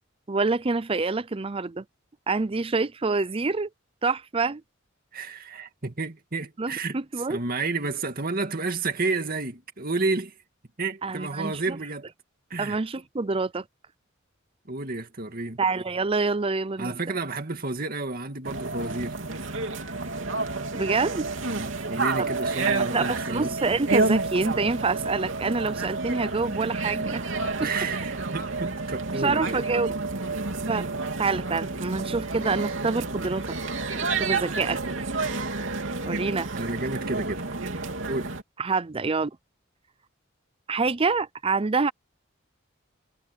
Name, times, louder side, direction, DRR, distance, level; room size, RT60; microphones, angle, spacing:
voice 1, 0.3-1.8 2.3-3.7 4.0-4.6 6.6-7.4 11.0-11.8 12.6-13.6 15.6-16.9 20.7-21.3 22.2-22.3 22.7-27.2 27.6-27.7 29.2-30.0 30.7-30.9 31.2-33.4 33.9-34.8 36.0-36.5 38.6-39.3 40.7-41.9, right 4 dB, 30° right, 0.6 m, -27 dB
voice 2, 5.1-7.0 7.3-10.3 10.8-12.1 12.5-12.8 14.7-15.6 16.8-19.2 21.5-23.5 27.6-29.6 36.5-37.5 38.1-38.4, right 3 dB, 50° right, 2.3 m, -31 dB
sound 1, 18.4-38.4, right 3 dB, 75° right, 3.0 m, -30 dB
head